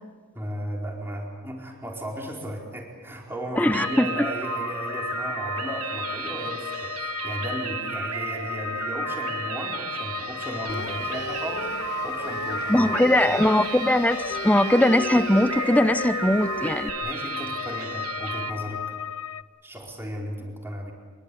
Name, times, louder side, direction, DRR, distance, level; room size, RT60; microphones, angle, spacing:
voice 1, 0.3-13.4 17.0-19.0 19.6-20.9, equal, 10° right, 4.6 m, -35 dB
sound 1, 3.6-19.4, left 9 dB, 85° left, 1.0 m, -34 dB
voice 2, 3.6-4.1 12.7-16.9, left 1 dB, 5° left, 0.7 m, -20 dB
sound 2, 3.7-18.5, right 8 dB, 85° right, 1.3 m, -34 dB
sound 3, 10.7-16.9, left 2 dB, 45° left, 1.7 m, -36 dB
26.0 x 23.0 x 8.6 m
head